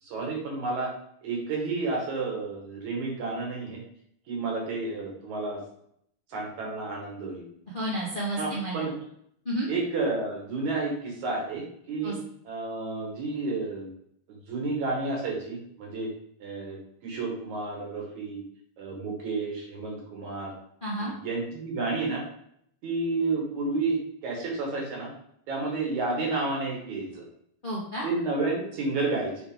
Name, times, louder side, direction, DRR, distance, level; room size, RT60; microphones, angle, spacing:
voice 1, 0.0-0.9 1.2-3.8 4.3-5.6 6.3-7.4 8.4-8.9 9.7-12.2 12.4-13.9 14.5-16.1 16.4-18.4 18.8-20.5 21.0-22.2 22.8-25.1 25.5-27.2 28.0-29.4, right 3 dB, 65° right, -1 dB, 2.6 m, -31 dB
voice 2, 7.7-8.9 9.4-9.7 12.0-12.1 20.8-21.1 27.6-28.1, right 1 dB, 30° left, -7 dB, 1.0 m, -31 dB
7.3 x 3.9 x 3.7 m, 0.69 s
omnidirectional pair, 3.9 m